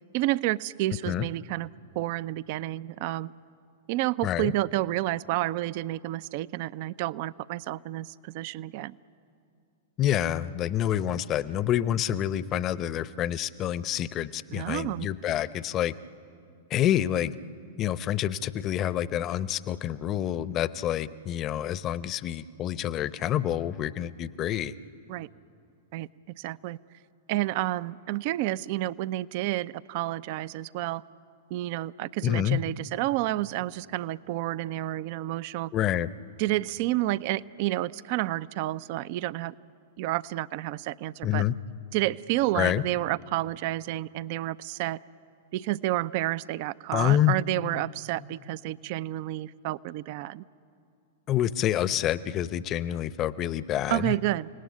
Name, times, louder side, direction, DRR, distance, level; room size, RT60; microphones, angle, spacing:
voice 1, 0.1-1.7 1.9-3.3 3.9-9.0 14.5-15.1 25.1-25.3 25.9-26.1 26.4-26.8 27.3-31.0 31.5-35.7 36.4-39.5 40.0-41.4 41.9-45.0 45.5-50.4 53.9-54.5, right 16 dB, 50° right, 18 dB, 0.5 m, -30 dB
voice 2, 4.2-4.5 10.0-15.9 16.7-17.3 17.8-24.8 32.2-32.6 35.7-36.1 41.2-41.6 42.5-42.8 46.9-47.4 51.3-54.1, left 11 dB, 35° left, 16 dB, 0.8 m, -27 dB
30.0 x 18.5 x 9.5 m, 2.5 s
hypercardioid pair, 100°, 0 cm